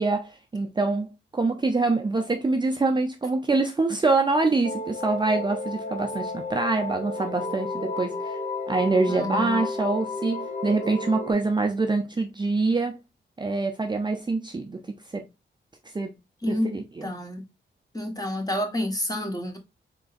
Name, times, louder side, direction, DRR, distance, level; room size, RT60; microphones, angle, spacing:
voice 1, 0.0-8.4 8.7-13.0 13.4-15.2 15.9-16.1 16.5-17.1, right 3 dB, 25° right, 0.6 m, -25 dB
sound 1, 4.6-11.3, left 2 dB, 40° left, 0.9 m, -32 dB
voice 2, 9.1-9.6 16.4-16.7 17.0-17.4 17.9-19.6, left 1 dB, 20° left, 1.3 m, -29 dB
3.8 x 3.8 x 2.5 m
cardioid pair, 85°, 20 cm